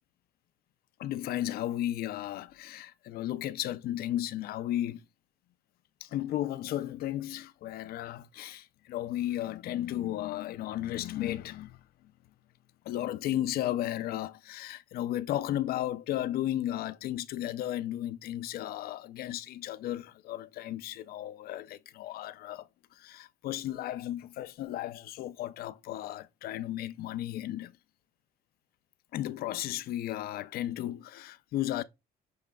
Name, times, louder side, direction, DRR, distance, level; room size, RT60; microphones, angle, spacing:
voice 1, 1.0-5.0 6.0-11.8 12.9-22.7 22.9-27.7 29.1-31.8, left 13 dB, 65° left, 0.4 m, -34 dB
6.9 x 3.2 x 2.3 m
cardioid pair, 110°, 17 cm